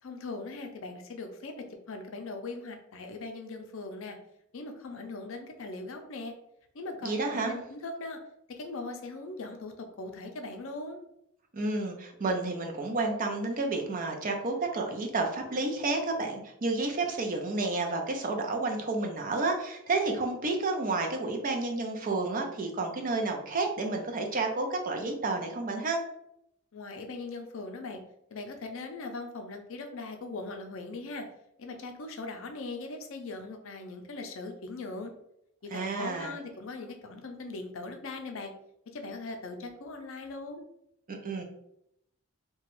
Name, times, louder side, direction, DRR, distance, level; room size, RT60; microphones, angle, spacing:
voice 1, 0.0-4.2 4.5-6.4 6.7-8.2 8.5-11.0 26.7-28.0 28.3-31.3 31.6-35.1 35.6-38.5 38.9-40.7, left 3 dB, 65° left, 5 dB, 0.5 m, -40 dB
voice 2, 7.0-7.5 11.5-26.0 35.7-36.4 41.1-41.4, right 3 dB, 40° right, 3 dB, 0.5 m, -30 dB
2.9 x 2.2 x 3.0 m, 0.77 s
head